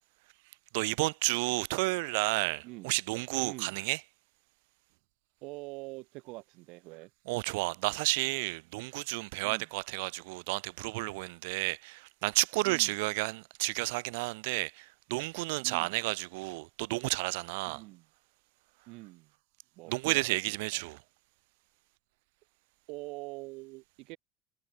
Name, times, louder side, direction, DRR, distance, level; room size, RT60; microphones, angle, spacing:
voice 1, 0.7-4.0 7.3-17.8 19.9-21.0, right 25 dB, 85° right, 0.7 m, -31 dB
voice 2, 2.6-3.0 3.4-3.8 5.4-7.1 9.4-9.7 12.6-12.9 15.6-15.9 17.7-18.1 18.9-19.3 19.7-20.8 22.9-24.2, right 24 dB, 55° right, 6.0 m, -45 dB
cardioid pair, 180°, 0 cm